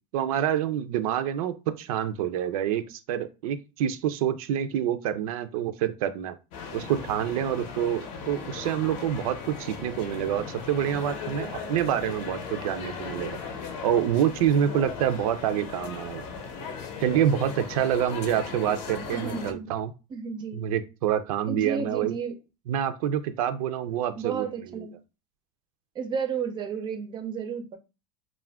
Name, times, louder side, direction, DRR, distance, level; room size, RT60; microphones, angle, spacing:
voice 1, 0.1-6.4 6.7-13.4 13.8-16.3 17.0-19.9 20.5-22.1 22.7-24.9, right 10 dB, 85° right, 0.4 m, -27 dB
sound 1, 6.5-19.5, left 5 dB, 45° left, 0.6 m, -37 dB
voice 2, 19.1-19.7 20.1-20.6 21.5-22.4 24.2-25.0 26.0-27.8, right 6 dB, 25° right, 0.4 m, -32 dB
2.4 x 2.1 x 3.3 m
supercardioid pair, 145°, 18 cm